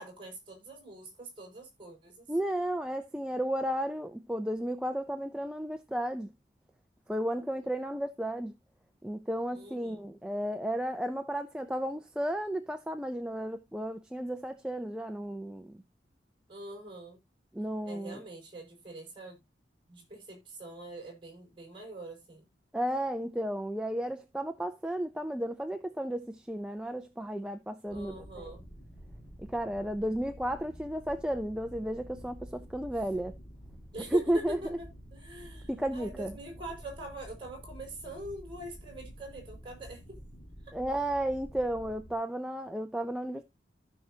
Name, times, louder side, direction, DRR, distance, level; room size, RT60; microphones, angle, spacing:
voice 1, 0.0-2.3 9.5-10.0 16.5-17.2 17.9-19.4 19.9-22.4 27.9-28.6 33.9-40.0, right 2 dB, 25° right, 5.6 m, -44 dB
voice 2, 2.3-6.3 7.1-8.5 9.0-15.8 17.5-18.2 22.7-28.5 29.4-33.3 34.1-34.8 35.7-36.4 40.7-43.4, right 1 dB, 5° right, 0.5 m, -33 dB
sound 1, 27.9-42.1, equal, 35° left, 4.3 m, -49 dB
14.5 x 6.0 x 2.8 m
head